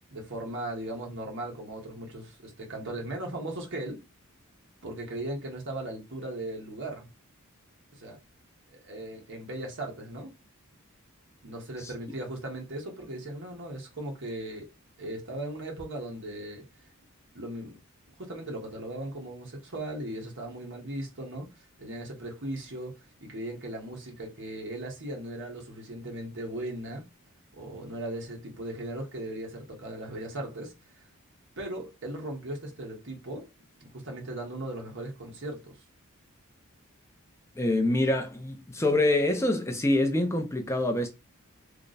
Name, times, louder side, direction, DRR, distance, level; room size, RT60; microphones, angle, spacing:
voice 1, 0.1-4.0 4.8-7.1 8.0-8.2 8.7-10.3 11.4-14.7 15.0-16.6 17.3-17.7 18.2-21.5 21.8-27.1 27.5-30.7 31.6-33.5 33.8-35.7, right 1 dB, 60° right, 1.2 m, -38 dB
voice 2, 37.6-41.1, left 1 dB, 10° left, 0.4 m, -25 dB
3.3 x 2.1 x 3.9 m
head